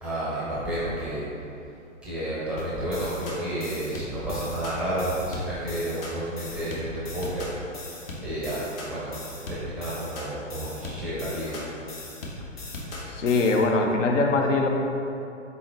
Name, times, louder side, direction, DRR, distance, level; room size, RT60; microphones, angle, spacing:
voice 1, 0.0-1.2 2.0-7.4 8.2-9.2 9.5-11.7, right 1 dB, 5° right, -9 dB, 0.5 m, -31 dB
sound 1, 2.6-13.6, left 2 dB, 50° left, 0.9 m, -39 dB
voice 2, 13.1-14.7, left 3 dB, 70° left, 2 dB, 0.6 m, -22 dB
4.0 x 3.7 x 3.2 m, 2.8 s
figure-of-eight pair, 120°, 38 cm